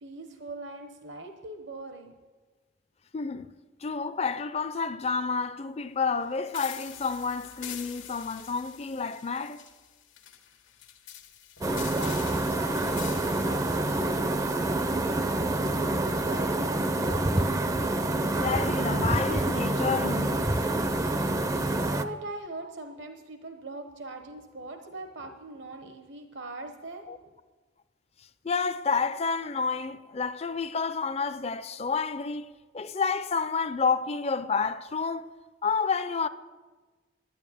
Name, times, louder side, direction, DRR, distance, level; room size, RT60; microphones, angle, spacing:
voice 1, 0.0-2.1 11.7-17.5 22.0-27.4, right 2 dB, 70° right, 1.0 m, -42 dB
voice 2, 3.1-3.5 3.8-9.6 18.2-20.5 27.1-27.2 28.4-35.3 35.6-36.3, left 5 dB, 30° left, 0.5 m, -30 dB
sound 1, 6.5-15.4, left 10 dB, 85° left, 1.5 m, -45 dB
sound 2, 11.6-22.0, right 2 dB, 15° right, 0.5 m, -27 dB
12.0 x 9.9 x 8.4 m
head